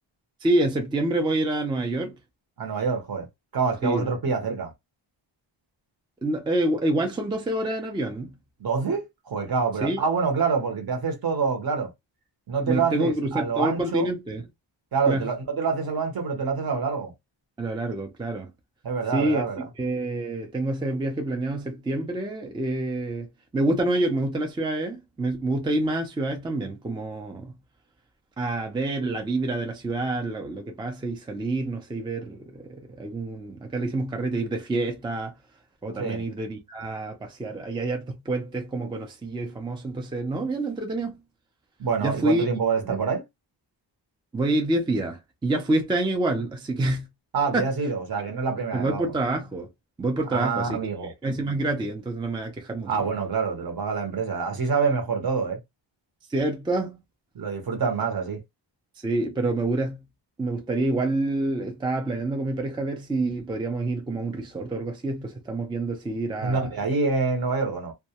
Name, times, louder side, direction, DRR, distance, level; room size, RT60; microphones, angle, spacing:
voice 1, 0.4-2.2 3.8-4.1 6.2-8.4 9.8-10.0 12.7-14.5 15.1-15.3 17.6-18.5 19.1-19.4 19.8-23.3 23.5-27.5 28.4-35.3 35.8-41.2 42.0-42.5 42.8-43.0 44.3-47.1 47.5-47.7 48.7-49.7 50.0-50.8 51.2-52.9 56.3-57.0 59.0-60.0 60.4-66.7, right 2 dB, 10° right, 0.4 m, -27 dB
voice 2, 2.6-3.3 3.5-4.7 8.6-11.9 12.5-14.1 14.9-17.1 18.8-19.7 36.0-36.2 41.8-43.2 47.3-49.1 50.3-51.1 52.9-55.6 57.4-58.4 66.4-67.9, right 5 dB, 50° right, 0.8 m, -26 dB
2.2 x 2.1 x 2.8 m
wide cardioid pair, 155°, 48 cm